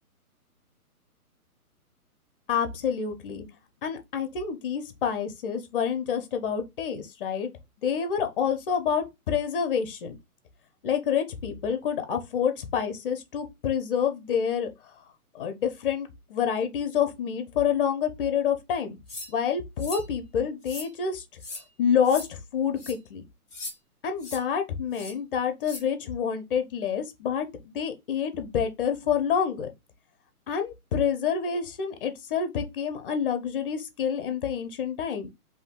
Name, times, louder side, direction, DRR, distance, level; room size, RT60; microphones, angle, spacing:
voice 1, 2.5-3.4 3.8-7.5 7.8-10.2 10.8-14.7 15.3-19.0 19.3-21.2 21.8-23.2 24.0-29.7 30.5-35.3, left 7 dB, 35° left, 0.7 m, -28 dB
sound 1, 19.1-19.3 19.8-20.1 20.6-20.9 21.4-21.6 22.0-22.3 22.8-22.9 23.5-23.7 24.2-24.4 24.9-25.1 25.6-25.8, left 2 dB, 5° right, 0.4 m, -38 dB
2.7 x 2.5 x 3.6 m
hypercardioid pair, 140°, 45 cm